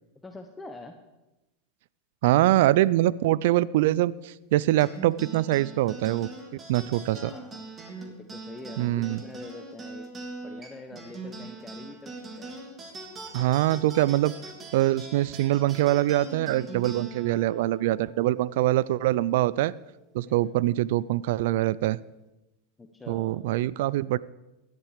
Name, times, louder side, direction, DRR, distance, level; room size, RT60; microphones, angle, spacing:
voice 1, 0.2-1.0 7.1-7.6 8.0-10.1 10.4-12.6 20.3-20.6 22.8-23.5, left 2 dB, 10° left, 5 dB, 1.1 m, -45 dB
voice 2, 2.2-6.3 6.7-7.3 8.8-9.2 13.3-14.3 14.7-19.7 20.1-22.0 23.1-24.2, right 15 dB, 70° right, 21 dB, 0.4 m, -24 dB
sound 1, 4.8-19.5, right 3 dB, 25° right, 2.9 m, -42 dB
16.0 x 11.5 x 5.0 m, 0.99 s
supercardioid pair, 120°, 0 cm